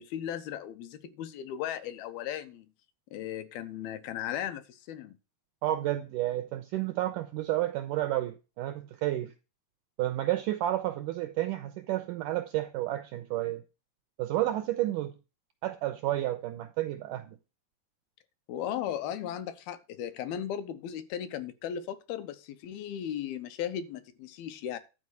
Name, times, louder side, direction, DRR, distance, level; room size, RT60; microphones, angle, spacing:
voice 1, 0.0-2.7 3.1-5.2 18.5-24.8, left 10 dB, 80° left, 2.7 m, -36 dB
voice 2, 5.6-9.3 10.0-13.6 14.2-15.1 15.6-17.4, right 14 dB, 90° right, 1.9 m, -31 dB
12.0 x 4.7 x 7.9 m
omnidirectional pair, 4.5 m